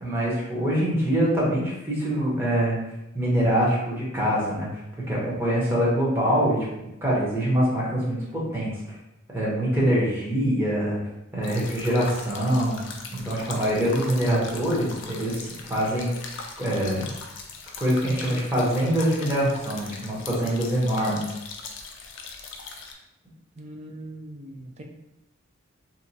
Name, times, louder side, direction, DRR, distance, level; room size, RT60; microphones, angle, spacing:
voice 1, 0.0-2.8 3.1-4.7 5.1-8.7 9.3-11.0 11.3-12.8 13.1-16.1 16.6-17.1 17.8-21.3, equal, 10° right, -6 dB, 0.9 m, -24 dB
sound 1, 11.4-22.9, left 4 dB, 65° left, 0.4 m, -40 dB
voice 2, 23.5-24.8, right 1 dB, 35° right, 2 dB, 0.4 m, -41 dB
2.8 x 2.2 x 2.7 m, 0.90 s
head